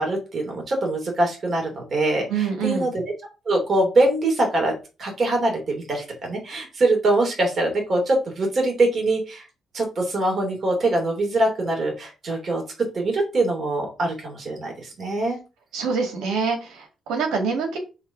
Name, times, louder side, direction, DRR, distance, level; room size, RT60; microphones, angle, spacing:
voice 1, 0.0-3.0 3.5-4.7 5.0-9.5 9.7-15.4, right 2 dB, 45° right, 1 dB, 3.0 m, -23 dB
voice 2, 2.3-2.9 15.7-17.8, right 5 dB, 90° right, 4 dB, 2.3 m, -25 dB
5.7 x 3.6 x 5.9 m, 0.30 s
cardioid pair, 90°, 0 cm